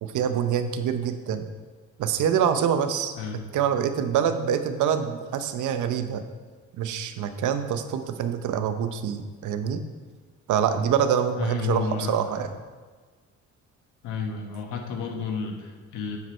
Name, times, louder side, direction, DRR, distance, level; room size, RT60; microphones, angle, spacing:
voice 1, 0.0-1.5 2.0-6.2 6.8-9.8 10.5-12.5, right 8 dB, 80° right, 9 dB, 0.7 m, -25 dB
voice 2, 11.4-12.2 14.0-16.2, left 5 dB, 90° left, 3 dB, 1.2 m, -31 dB
9.4 x 5.2 x 4.4 m, 1.4 s
cardioid pair, 90°, 30 cm